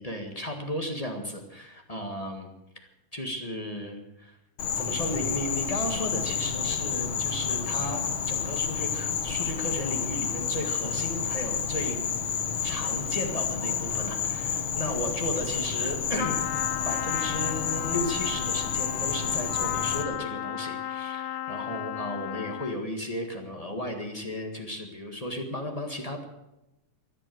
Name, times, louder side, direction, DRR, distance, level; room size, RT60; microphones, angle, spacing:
voice 1, 0.0-2.5 3.1-4.4 4.7-12.0 12.6-16.4 16.8-26.2, left 1 dB, 25° left, 3 dB, 0.7 m, -34 dB
Insect, 4.6-20.0, left 7 dB, 60° left, 1.3 m, -30 dB
Trumpet, 16.2-22.9, left 13 dB, 80° left, 1.6 m, -34 dB
16.0 x 11.0 x 7.8 m, 0.91 s
omnidirectional pair, 3.9 m